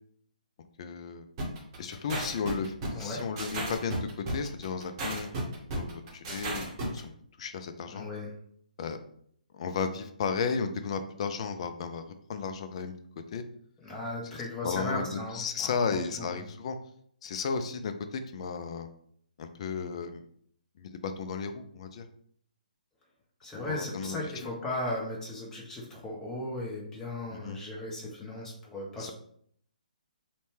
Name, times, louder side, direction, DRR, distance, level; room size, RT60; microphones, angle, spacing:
voice 1, 0.8-1.3 1.8-7.0 7.4-8.1 8.8-9.0 9.5-12.9 13.3-13.4 14.3-16.8 17.2-18.9 19.4-20.2 20.8-22.1 23.6-24.2 27.3-27.6 29.0-29.1, left 5 dB, 45° left, 8 dB, 0.3 m, -34 dB
sound 1, 1.4-7.0, right 2 dB, 30° right, 0.8 m, -34 dB
voice 2, 7.9-8.3 13.8-16.4 23.4-29.1, left 1 dB, 10° left, -3 dB, 0.6 m, -36 dB
2.7 x 2.1 x 3.1 m, 0.64 s
figure-of-eight pair, 140°, 5 cm